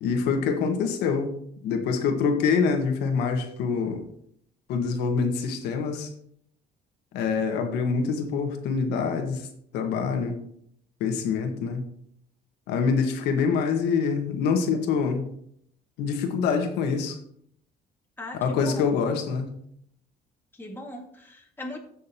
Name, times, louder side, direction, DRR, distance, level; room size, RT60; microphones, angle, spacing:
voice 1, 0.0-1.3 1.6-4.1 4.7-6.1 7.1-9.5 9.7-10.4 11.0-11.8 12.7-15.2 16.0-17.2 18.3-19.5, left 5 dB, 90° left, 5 dB, 1.5 m, -25 dB
voice 2, 18.2-18.9 20.5-21.8, left 2 dB, 10° left, -1 dB, 2.1 m, -39 dB
16.0 x 6.4 x 2.9 m, 0.68 s
cardioid pair, 110°, 17 cm